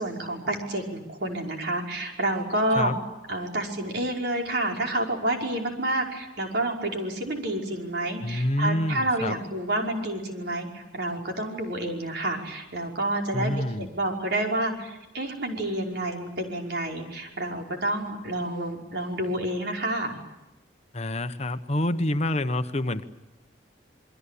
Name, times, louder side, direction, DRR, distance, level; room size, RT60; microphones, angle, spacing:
voice 1, 0.0-2.9 3.3-13.5 13.8-20.1, right 1 dB, 60° right, 2 dB, 5.4 m, -29 dB
voice 2, 8.2-9.4 13.3-13.9 20.9-23.0, left 1 dB, 35° left, 9 dB, 1.1 m, -27 dB
28.5 x 22.5 x 8.5 m, 0.97 s
head